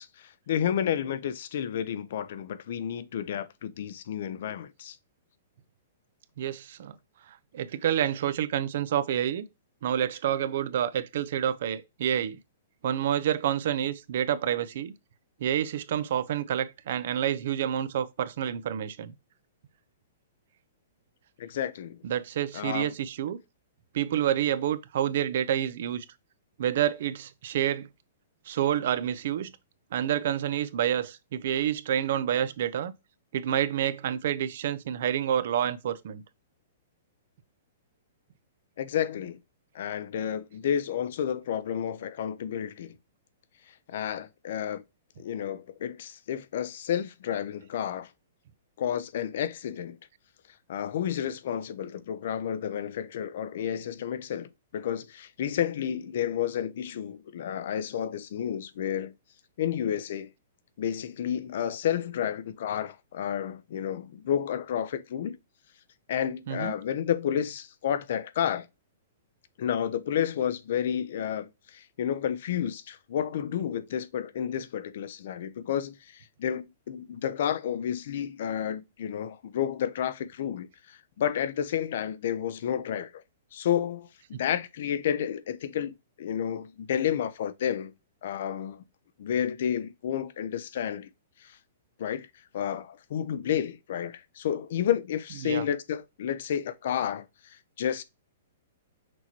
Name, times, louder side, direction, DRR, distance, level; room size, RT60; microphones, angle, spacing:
voice 1, 0.0-5.0 21.4-22.0 22.5-22.9 38.8-39.4 39.7-43.0 43.9-44.8 45.2-48.1 48.8-50.0 50.7-59.1 59.6-60.3 60.8-65.4 66.1-68.7 69.6-83.2 83.5-87.9 88.2-88.8 89.2-91.1 91.4-91.6 92.0-92.3 92.5-98.0, left 9 dB, 65° left, 0.6 m, -31 dB
voice 2, 6.4-7.0 7.5-9.4 9.8-12.4 12.8-14.9 15.4-19.1 22.0-23.4 23.9-26.1 26.6-27.9 28.5-29.5 29.9-32.9 33.3-36.2 66.5-66.7 95.4-95.7, right 10 dB, 65° right, 0.5 m, -28 dB
6.1 x 3.0 x 2.8 m
hypercardioid pair, 145°, 0 cm